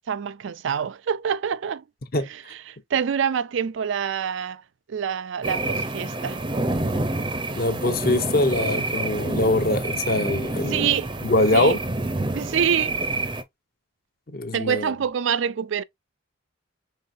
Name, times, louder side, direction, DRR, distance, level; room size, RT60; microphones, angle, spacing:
voice 1, 0.1-1.8 2.5-4.6 4.9-6.4 10.7-11.1 11.5-11.8 12.3-13.0 14.5-15.8, right 7 dB, 70° right, 0.4 m, -26 dB
sound 1, 5.4-13.4, right 2 dB, 25° right, 0.6 m, -28 dB
voice 2, 7.6-10.9 11.2-11.8 14.3-14.9, left 2 dB, 45° left, 0.9 m, -23 dB
5.5 x 3.6 x 2.6 m
head